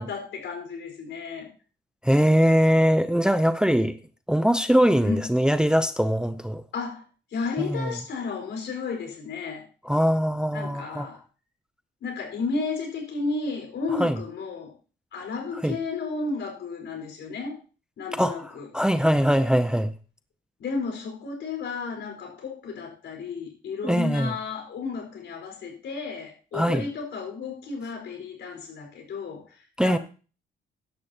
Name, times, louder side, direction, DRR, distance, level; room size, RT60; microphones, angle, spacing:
voice 1, 0.0-1.5 5.0-5.2 6.7-7.0 7.3-9.7 10.5-11.2 12.0-14.7 15.1-17.6 18.0-18.7 20.6-30.0, left 4 dB, 70° left, 5.0 m, -33 dB
voice 2, 2.0-3.9 4.3-6.6 7.6-7.9 9.8-11.1 13.9-14.2 15.6-15.8 18.1-19.9 23.8-24.3 26.5-26.9 29.8-30.0, equal, 5° right, 0.6 m, -22 dB
15.5 x 11.0 x 2.9 m
cardioid pair, 90°, 20 cm